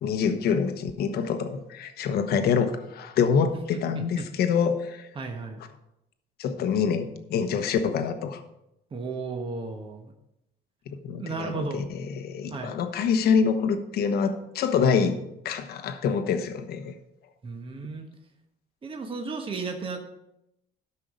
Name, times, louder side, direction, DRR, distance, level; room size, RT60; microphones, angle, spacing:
voice 1, 0.0-5.1 6.4-8.4 10.9-15.2 15.4-16.9, left 6 dB, 70° left, 7 dB, 1.1 m, -26 dB
voice 2, 5.1-5.6 8.9-10.1 11.1-11.9 12.5-12.7 17.4-18.0 18.8-20.0, right 4 dB, 30° right, 3 dB, 1.3 m, -34 dB
13.0 x 5.7 x 5.1 m, 0.86 s
cardioid pair, 110°, 17 cm